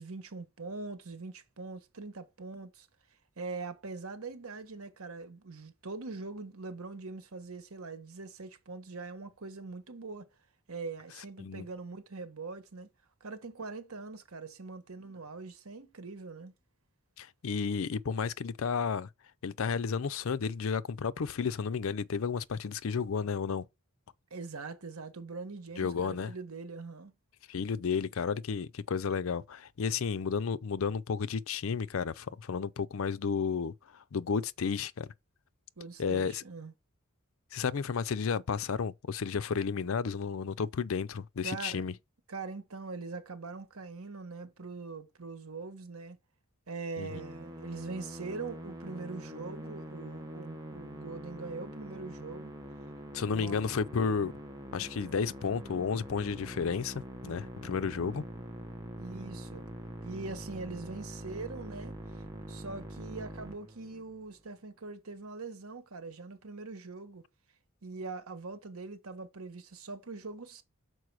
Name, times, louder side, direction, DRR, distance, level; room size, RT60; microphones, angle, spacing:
voice 1, 0.0-2.9 3.4-10.3 10.7-12.9 13.2-16.5 24.3-27.1 35.8-36.7 41.4-41.8 42.3-46.2 46.7-52.5 53.3-53.6 54.8-54.9 59.0-59.6 60.0-67.2 67.8-70.6, right 3 dB, 85° right, 1.2 m, -42 dB
voice 2, 17.2-19.1 19.4-23.7 25.8-26.3 27.5-35.1 36.0-36.4 37.5-41.9 47.0-47.1 53.1-54.3 54.7-58.2, left 5 dB, 70° left, 0.5 m, -32 dB
Musical instrument, 47.1-64.2, right 1 dB, 15° right, 1.2 m, -44 dB
6.3 x 4.7 x 4.7 m
head